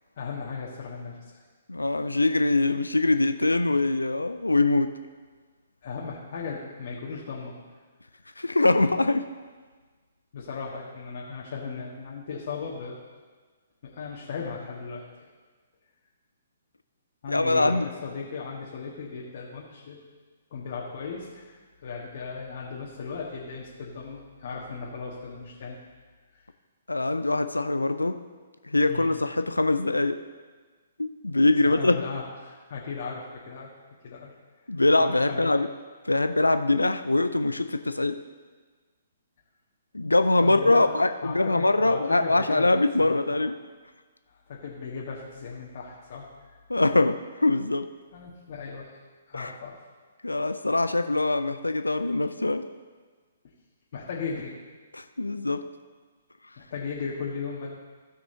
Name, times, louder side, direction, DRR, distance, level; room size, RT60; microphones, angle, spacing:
voice 1, 0.2-1.4 5.8-7.5 10.3-13.0 13.8-15.0 17.2-20.0 20.5-25.8 26.3-26.5 28.9-29.1 31.6-33.7 34.0-34.3 35.0-35.5 40.4-42.7 43.0-43.2 44.3-46.6 48.1-49.0 49.3-49.9 53.9-54.5 56.6-57.7, left 5 dB, 50° left, -4 dB, 1.5 m, -37 dB
voice 2, 1.7-5.0 8.4-9.3 17.3-17.9 26.9-28.2 28.7-30.2 31.0-32.0 34.7-35.7 36.0-38.2 39.9-43.6 46.7-47.9 49.3-49.5 50.2-52.7 54.9-55.6, left 2 dB, 85° left, 10 dB, 0.4 m, -23 dB
15.5 x 6.1 x 3.8 m, 1.4 s
figure-of-eight pair, 125°, 0 cm